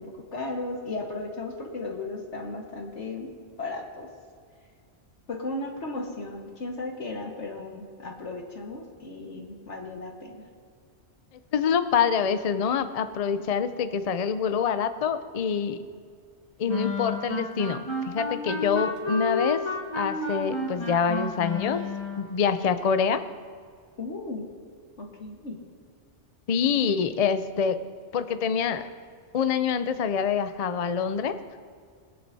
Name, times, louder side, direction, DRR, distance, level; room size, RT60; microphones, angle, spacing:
voice 1, 0.0-3.3 3.6-4.1 5.3-10.4 24.0-24.4 25.0-25.6, left 2 dB, 75° left, 1 dB, 1.9 m, -35 dB
voice 2, 11.5-15.8 16.6-19.6 19.9-21.8 22.2-23.2 26.5-27.8 28.1-28.9 29.3-31.3, left 6 dB, 50° left, 10 dB, 0.5 m, -26 dB
sound 1, 16.7-22.3, left 2 dB, 25° left, 1.5 m, -31 dB
21.0 x 9.7 x 2.7 m, 2.1 s
omnidirectional pair, 1.2 m